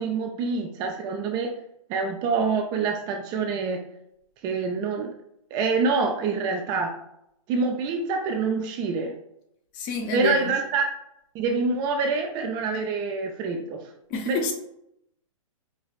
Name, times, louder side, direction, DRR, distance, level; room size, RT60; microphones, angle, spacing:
voice 1, 0.0-1.5 1.9-3.8 4.4-5.1 5.5-6.9 7.5-9.1 10.1-10.8 11.3-13.8 14.3-14.5, right 4 dB, 25° right, 0.3 m, -26 dB
voice 2, 9.7-10.5 14.1-14.5, left 5 dB, 35° left, 0.6 m, -28 dB
4.5 x 3.0 x 2.4 m
hypercardioid pair, 125°, 18 cm